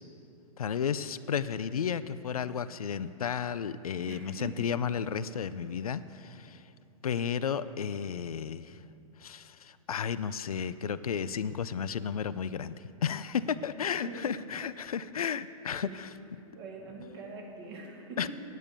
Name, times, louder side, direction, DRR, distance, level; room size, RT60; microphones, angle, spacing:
voice 1, 0.6-6.6 7.0-8.8 9.2-16.2 18.2-18.3, left 7 dB, 85° left, 14 dB, 0.5 m, -33 dB
voice 2, 4.0-4.7 13.6-13.7 14.0-14.4 15.7-16.0 16.5-18.3, right 3 dB, 50° right, 0 dB, 2.3 m, -44 dB
9.3 x 9.2 x 6.8 m, 2.7 s
hypercardioid pair, 125°, 18 cm